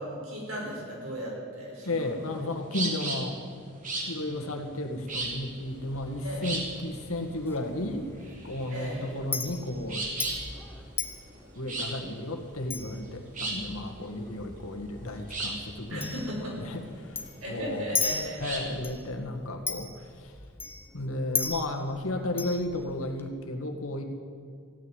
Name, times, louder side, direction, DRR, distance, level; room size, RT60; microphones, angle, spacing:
voice 1, 0.0-2.1 6.2-6.5 8.7-9.0 15.9-16.8 17.4-18.4, equal, 75° right, -3 dB, 5.5 m, -36 dB
voice 2, 1.8-3.4 4.1-8.1 8.3-10.1 11.5-17.2 17.5-17.9 18.4-19.9 20.2-20.3 20.9-24.0, left 1 dB, 80° left, 4 dB, 1.8 m, -33 dB
sound 1, 1.8-18.8, right 2 dB, 35° right, 2.7 m, -37 dB
Chink clink, 5.1-23.3, left 4 dB, 10° left, 0.9 m, -39 dB
15.5 x 9.2 x 9.8 m, 2.2 s
head